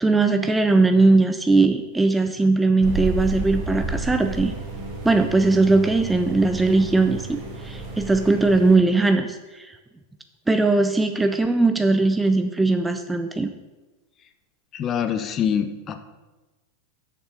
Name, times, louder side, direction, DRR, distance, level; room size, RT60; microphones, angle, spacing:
voice 1, 0.0-4.5 5.0-7.4 7.6-9.7 10.5-13.5, right 3 dB, 10° right, 8 dB, 0.5 m, -19 dB
sound 1, 2.8-8.8, right 3 dB, 45° right, 2.2 m, -32 dB
voice 2, 14.7-16.0, left 8 dB, 30° left, 10 dB, 0.8 m, -25 dB
7.0 x 6.7 x 6.5 m, 1.2 s
figure-of-eight pair, 90°, 0 cm